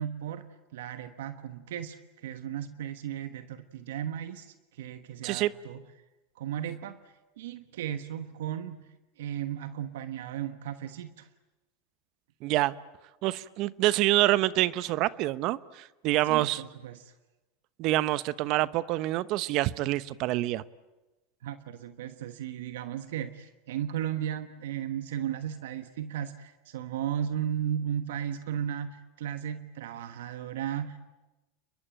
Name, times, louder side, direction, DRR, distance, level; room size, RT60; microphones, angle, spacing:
voice 1, 0.0-5.8 6.3-7.0 7.4-11.3 16.3-17.1 21.4-31.0, right 10 dB, 75° right, 10 dB, 1.2 m, -35 dB
voice 2, 12.4-12.7 13.2-16.6 17.8-20.6, right 16 dB, 55° right, 16 dB, 1.0 m, -26 dB
30.0 x 22.0 x 8.9 m, 1.1 s
hypercardioid pair, 95°, 0 cm